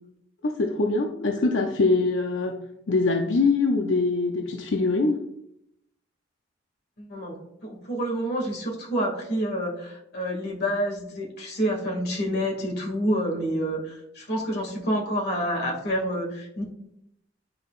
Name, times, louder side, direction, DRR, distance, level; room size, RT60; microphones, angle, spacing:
voice 1, 0.4-2.5 2.9-5.2, left 3 dB, 85° left, 3 dB, 0.6 m, -23 dB
voice 2, 7.0-16.6, equal, 60° left, 0 dB, 2.2 m, -28 dB
10.0 x 5.6 x 2.5 m, 0.77 s
head